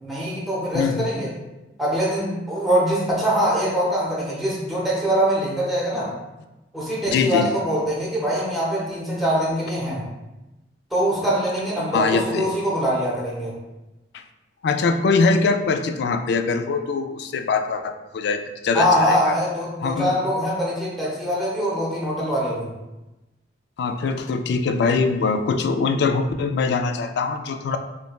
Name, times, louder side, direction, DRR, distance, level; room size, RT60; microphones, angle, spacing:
voice 1, 0.0-1.3 1.8-6.1 6.7-10.0 10.9-13.6 18.7-22.7, equal, ahead, -6 dB, 0.8 m, -23 dB
voice 2, 0.7-1.1 7.1-7.5 11.9-12.5 14.1-14.2 14.6-19.4 19.8-20.1 23.8-27.8, left 4 dB, 65° left, 7 dB, 0.3 m, -22 dB
5.6 x 2.2 x 2.2 m, 1.0 s
head